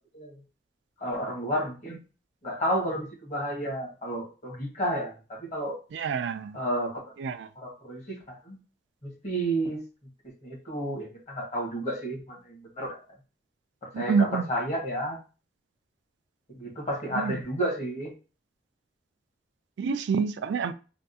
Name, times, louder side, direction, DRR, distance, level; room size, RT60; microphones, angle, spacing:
voice 1, 1.0-2.0 2.4-5.8 6.5-7.0 7.5-8.6 9.0-9.8 10.4-13.0 13.9-15.2 16.5-18.1, right 1 dB, 40° left, -2 dB, 1.4 m, -31 dB
voice 2, 5.9-6.6 7.2-7.5 13.9-14.5 17.2-17.3 19.8-20.7, right 5 dB, 80° right, 12 dB, 0.3 m, -27 dB
3.5 x 2.3 x 2.7 m, 0.33 s
head